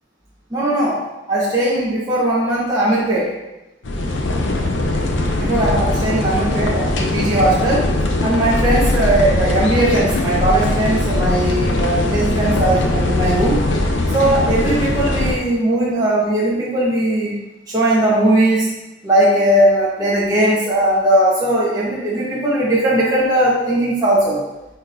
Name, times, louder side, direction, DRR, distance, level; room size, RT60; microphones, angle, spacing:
voice 1, 0.5-1.0 1.3-3.3 5.3-7.9 8.2-13.6 14.1-17.3 17.7-18.7 19.0-24.4, right 1 dB, 20° right, -8 dB, 1.2 m, -18 dB
sound 1, 3.8-15.4, left 1 dB, 80° left, 0.8 m, -20 dB
9.5 x 4.3 x 2.7 m, 0.98 s
head